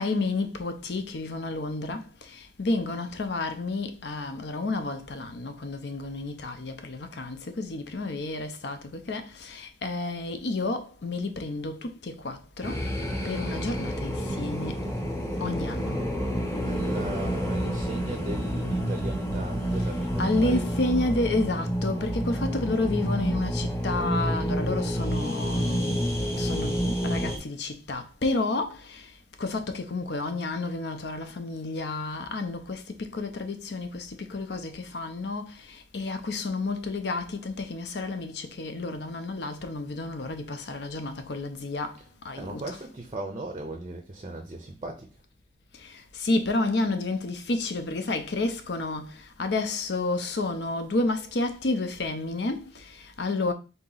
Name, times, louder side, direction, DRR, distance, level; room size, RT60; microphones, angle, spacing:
voice 1, 0.0-12.9 13.2-14.8 15.4-16.0 20.2-42.0 42.2-42.8 45.7-53.5, left 2 dB, 75° left, 0.6 m, -31 dB
sound 1, 12.6-27.4, equal, 15° left, 0.9 m, -29 dB
voice 2, 16.6-20.9 42.0-42.1 42.3-45.1, right 2 dB, 30° right, 0.5 m, -37 dB
4.0 x 2.9 x 3.9 m
head